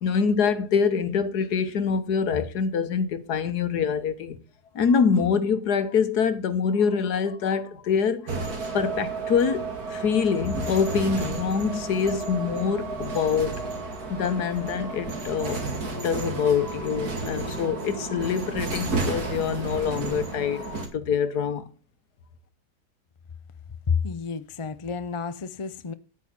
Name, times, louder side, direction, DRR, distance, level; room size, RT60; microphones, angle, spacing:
voice 1, 0.0-4.4 4.7-8.3 8.7-13.6 14.1-15.6 15.9-21.6, left 6 dB, 75° left, 1.7 m, -25 dB
sound 1, 8.3-20.9, right 3 dB, 65° right, 2.8 m, -32 dB
voice 2, 23.9-25.9, left 6 dB, 40° left, 0.4 m, -29 dB
9.2 x 8.9 x 5.9 m
omnidirectional pair, 1.7 m